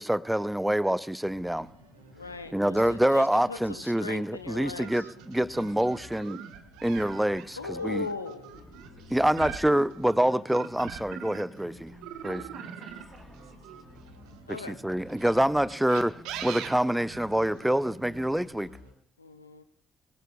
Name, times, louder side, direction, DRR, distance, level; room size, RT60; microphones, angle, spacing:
voice 1, 0.0-1.7 2.5-6.4 6.8-8.1 9.1-11.9 12.2-12.4 14.5-16.1 16.4-18.8, right 1 dB, 5° right, 19 dB, 0.5 m, -26 dB
sound 1, 1.2-18.9, equal, 85° right, 1.7 m, -54 dB
voice 2, 2.1-5.0 7.6-8.6 14.5-14.8 19.2-19.6, left 3 dB, 85° left, 10 dB, 0.6 m, -38 dB
sound 2, 4.8-11.6 12.0-14.4 15.1-17.7, right 9 dB, 65° right, 1.0 m, -42 dB
voice 3, 5.6-6.4 8.9-9.6 12.2-14.1 16.0-16.1, right 3 dB, 40° right, 0 dB, 4.4 m, -53 dB
sound 3, 8.5-18.5, equal, 25° left, 6.1 m, -54 dB
23.0 x 18.5 x 2.3 m, 0.65 s
figure-of-eight pair, 40°, 0 cm